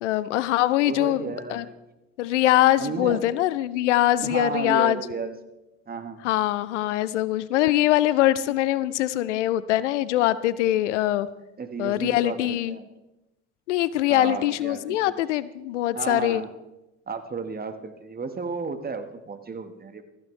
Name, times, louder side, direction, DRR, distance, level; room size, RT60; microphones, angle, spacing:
voice 1, 0.0-1.2 1.5-1.7 2.2-5.0 6.2-11.3 11.8-12.8 13.7-16.4, left 14 dB, 80° left, 17 dB, 0.5 m, -23 dB
voice 2, 0.8-1.7 2.8-3.2 4.2-5.4 5.9-6.2 11.6-12.9 14.1-15.2 15.9-16.5 17.1-20.0, right 4 dB, 25° right, 9 dB, 1.4 m, -32 dB
15.0 x 14.0 x 3.2 m, 0.97 s
hypercardioid pair, 60°, 35 cm